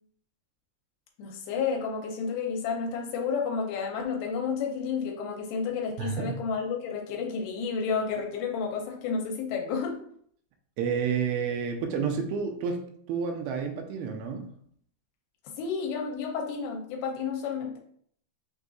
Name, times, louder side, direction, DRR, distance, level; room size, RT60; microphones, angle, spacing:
voice 1, 1.2-10.0 15.6-17.8, left 5 dB, 80° left, 1 dB, 2.4 m, -31 dB
voice 2, 6.0-6.4 10.8-14.5, right 6 dB, 85° right, 4 dB, 2.4 m, -30 dB
6.3 x 2.7 x 2.3 m, 0.63 s
omnidirectional pair, 4.5 m